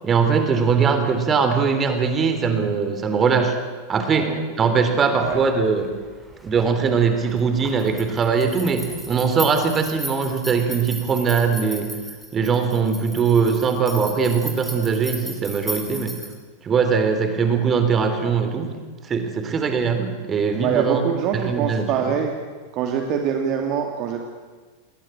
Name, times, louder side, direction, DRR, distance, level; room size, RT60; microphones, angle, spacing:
voice 1, 0.0-3.6 3.9-5.9 6.4-11.9 12.3-16.2 16.6-18.7 19.0-21.0 21.3-21.9, right 5 dB, 25° right, 8 dB, 3.8 m, -21 dB
voice 2, 4.1-4.5 5.1-5.4 20.5-22.3 22.7-24.2, right 7 dB, 40° right, 3 dB, 2.7 m, -24 dB
sound 1, 5.2-16.3, right 1 dB, 5° right, 6.1 m, -37 dB
29.0 x 21.5 x 8.8 m, 1.4 s
figure-of-eight pair, 90°, 0 cm